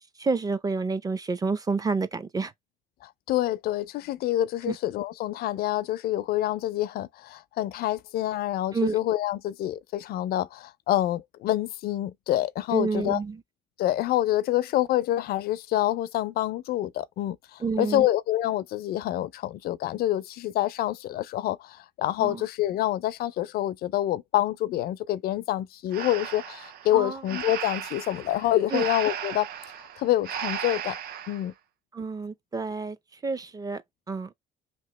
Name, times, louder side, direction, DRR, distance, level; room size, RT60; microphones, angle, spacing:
voice 1, 0.2-2.5 4.6-4.8 8.7-9.0 12.7-13.4 17.6-18.1 22.2-22.4 26.9-27.2 28.7-28.8 31.9-33.0 33.2-33.8 34.1-34.3, right 4 dB, 20° right, 0.5 m, -29 dB
voice 2, 3.0-13.2 13.8-29.5 30.0-31.0 31.3-31.5, left 14 dB, 65° left, 0.4 m, -27 dB
Breathing, 25.9-31.5, right 9 dB, 65° right, 0.6 m, -36 dB
3.0 x 2.8 x 2.9 m
cardioid pair, 110°, 17 cm